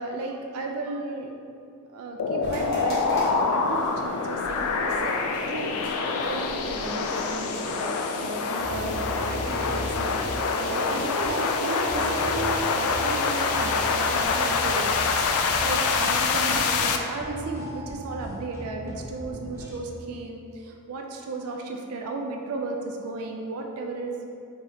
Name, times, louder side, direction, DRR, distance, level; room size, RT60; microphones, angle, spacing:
voice 1, 0.0-1.3 1.9-5.2 5.5-10.1 10.6-14.9 15.3-24.3, right 3 dB, 70° right, 2 dB, 0.4 m, -34 dB
sound 1, 2.2-17.0, left 4 dB, 65° left, 0.3 m, -26 dB
sound 2, 2.4-7.9, equal, 45° left, 1.2 m, -41 dB
sound 3, 8.6-19.8, equal, 15° right, 0.6 m, -38 dB
3.1 x 3.0 x 3.8 m, 2.5 s
head